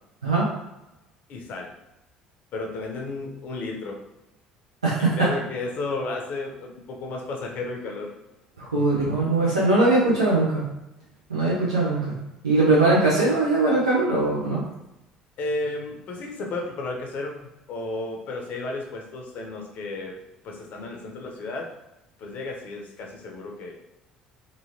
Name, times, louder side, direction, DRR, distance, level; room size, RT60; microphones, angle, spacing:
voice 1, 1.3-1.7 2.5-4.0 5.0-8.1 15.4-17.4 17.7-20.1 20.4-21.7 22.2-23.7, left 2 dB, 50° left, 1 dB, 0.7 m, -33 dB
voice 2, 4.8-5.3 8.6-10.7 11.3-12.2 12.4-14.6, right 2 dB, 85° right, -8 dB, 0.6 m, -21 dB
2.8 x 2.7 x 2.8 m, 0.94 s
figure-of-eight pair, 55°, 3 cm